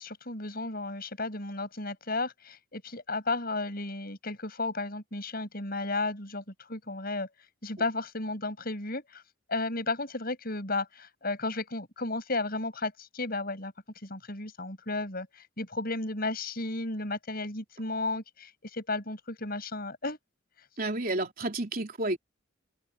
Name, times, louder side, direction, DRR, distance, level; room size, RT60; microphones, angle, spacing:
voice 1, 0.0-6.4 6.7-7.3 7.6-9.2 9.5-13.7 14.0-20.2, left 2 dB, 45° left, 7.7 m, -33 dB
voice 2, 20.8-22.2, right 2 dB, 45° right, 3.7 m, -31 dB
head